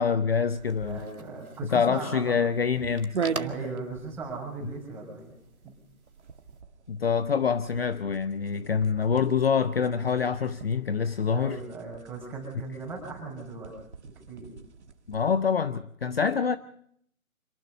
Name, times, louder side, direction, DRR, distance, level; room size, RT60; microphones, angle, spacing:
voice 1, 0.0-1.0 1.7-3.2 6.9-11.6 15.1-16.6, left 6 dB, 45° left, 0.8 m, -26 dB
sound 1, 0.5-15.4, right 6 dB, 50° right, 1.7 m, -41 dB
sound 2, 0.6-6.6, right 3 dB, 90° right, 1.8 m, -46 dB
voice 2, 0.9-2.4 3.3-5.3 5.6-5.8 11.3-13.7 14.0-14.5, right 4 dB, 5° right, 6.9 m, -38 dB
26.5 x 19.0 x 5.4 m
figure-of-eight pair, 150°, 42 cm